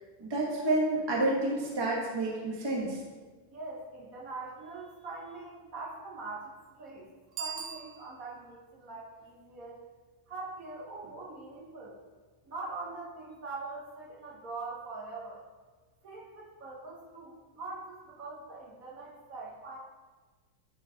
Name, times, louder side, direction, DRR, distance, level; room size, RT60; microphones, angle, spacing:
voice 1, 0.2-3.0, right 2 dB, 20° right, -3 dB, 0.8 m, -29 dB
voice 2, 3.5-7.1 7.4-9.8 10.3-12.0 12.4-15.4 16.0-19.8, right 3 dB, 50° right, -4 dB, 1.4 m, -43 dB
Bicycle bell, 7.3-8.5, right 6 dB, 65° right, 1.4 m, -41 dB
11.0 x 4.7 x 2.8 m, 1.3 s
omnidirectional pair, 2.2 m